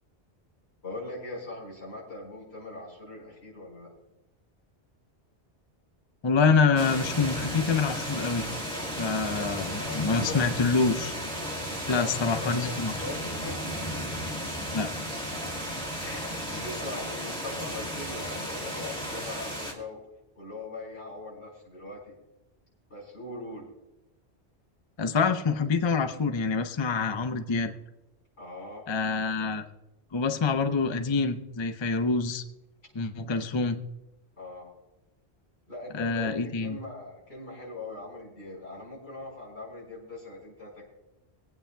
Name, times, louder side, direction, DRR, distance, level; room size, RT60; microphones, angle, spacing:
voice 1, 0.8-3.9 9.3-10.4 11.9-13.8 16.0-20.0 20.4-22.2 22.9-23.7 28.4-28.9 34.4-34.7 35.7-40.9, left 2 dB, 85° left, -4 dB, 5.4 m, -41 dB
voice 2, 6.2-8.5 9.0-11.2 11.9-12.9 14.7-14.9 25.0-27.7 28.9-29.6 30.1-32.4 32.9-33.8 35.9-36.8, left 4 dB, 30° left, 8 dB, 0.6 m, -26 dB
sound 1, 6.8-19.7, equal, 5° left, 2.2 m, -34 dB
25.5 x 8.8 x 2.2 m, 0.95 s
omnidirectional pair, 1.1 m